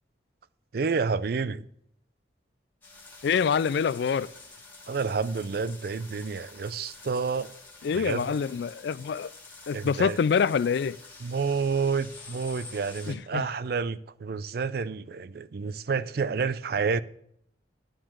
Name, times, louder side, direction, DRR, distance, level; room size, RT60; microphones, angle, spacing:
voice 1, 0.7-1.7 4.9-7.5 7.9-8.3 9.7-10.2 11.2-17.0, right 5 dB, 55° right, 0.4 m, -29 dB
sound 1, 2.8-13.1, left 3 dB, 10° left, 1.6 m, -48 dB
voice 2, 3.2-4.3 7.8-9.3 9.7-11.0 13.1-13.4, left 6 dB, 65° left, 0.3 m, -26 dB
11.5 x 5.0 x 7.2 m
head